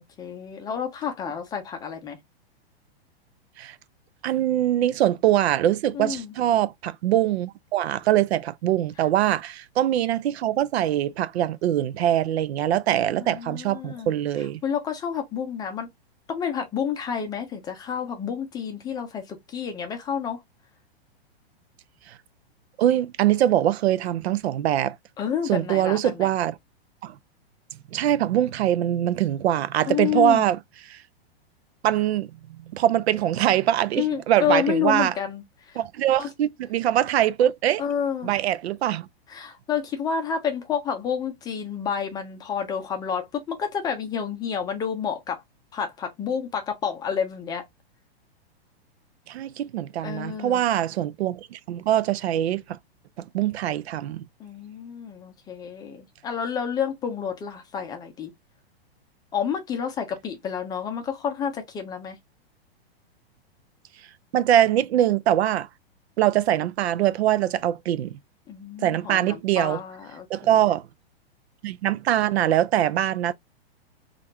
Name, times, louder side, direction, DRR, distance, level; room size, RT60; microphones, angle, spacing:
voice 1, 0.0-2.2 5.9-6.3 13.1-14.1 14.6-15.9 16.3-20.4 25.2-26.3 29.9-30.5 34.0-35.8 36.2-36.3 37.8-38.3 39.3-45.4 45.7-47.6 50.0-50.6 54.4-58.3 59.3-62.2 68.5-70.6, left 7 dB, 15° left, 0.5 m, -29 dB
voice 2, 4.2-14.6 22.1-22.2 22.8-25.0 25.5-26.5 27.0-27.2 27.9-30.6 30.9-31.0 31.8-32.3 32.7-35.1 35.8-37.8 38.2-39.1 49.3-52.8 53.2-54.2 64.3-65.7 66.2-68.2 68.8-69.8 70.3-70.9 71.6-73.3, right 12 dB, 80° right, 0.5 m, -23 dB
3.3 x 2.5 x 2.7 m
hypercardioid pair, 145°, 31 cm